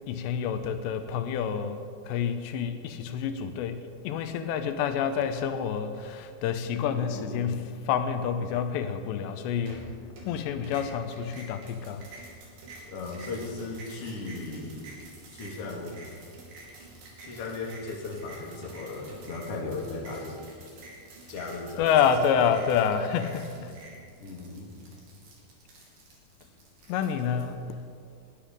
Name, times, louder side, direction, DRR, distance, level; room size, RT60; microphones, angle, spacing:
voice 1, 0.1-3.8 4.0-9.9 10.3-12.0 21.8-23.7 26.9-27.5, left 7 dB, 85° left, 8 dB, 3.0 m, -28 dB
voice 2, 6.9-7.6 12.9-14.8 15.3-16.0 16.8-16.9 17.2-20.4 21.3-21.9 22.2-22.4 24.2-24.8, left 3 dB, 45° left, -1 dB, 2.2 m, -37 dB
sound 1, 9.7-10.4 10.6-27.5, right 2 dB, 55° right, 4.2 m, -48 dB
20.5 x 10.5 x 5.2 m, 2.2 s
omnidirectional pair, 4.9 m